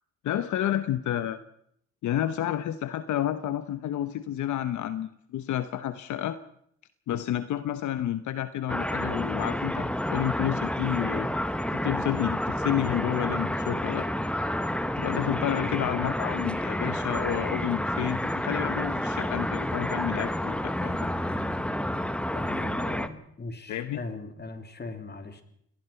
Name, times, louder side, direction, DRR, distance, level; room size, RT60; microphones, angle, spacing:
voice 1, 0.2-1.4 2.0-6.4 7.1-11.3 11.8-14.1 15.0-21.1 23.7-24.0, left 11 dB, 75° left, 12 dB, 1.0 m, -30 dB
sound 1, 8.7-23.1, left 1 dB, 5° left, 1.3 m, -29 dB
voice 2, 22.3-25.4, left 3 dB, 35° left, 7 dB, 3.1 m, -39 dB
26.5 x 19.0 x 5.8 m, 0.71 s
cardioid pair, 90°, 30 cm